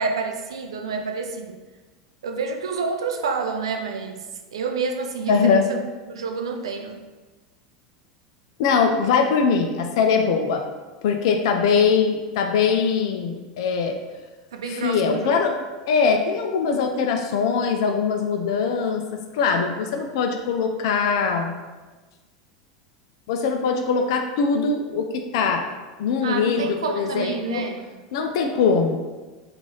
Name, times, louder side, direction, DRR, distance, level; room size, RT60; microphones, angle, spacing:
voice 1, 0.0-1.6 2.2-4.3 4.5-7.0 14.5-15.4 26.2-28.0, right 4 dB, 85° right, 4 dB, 0.4 m, -28 dB
voice 2, 5.3-5.6 8.6-10.6 11.0-14.0 14.7-15.6 15.9-21.6 23.3-25.1 25.3-25.6 26.0-27.6 28.1-29.0, left 5 dB, 70° left, 4 dB, 0.4 m, -22 dB
3.1 x 2.4 x 3.8 m, 1.2 s
hypercardioid pair, 95°, 3 cm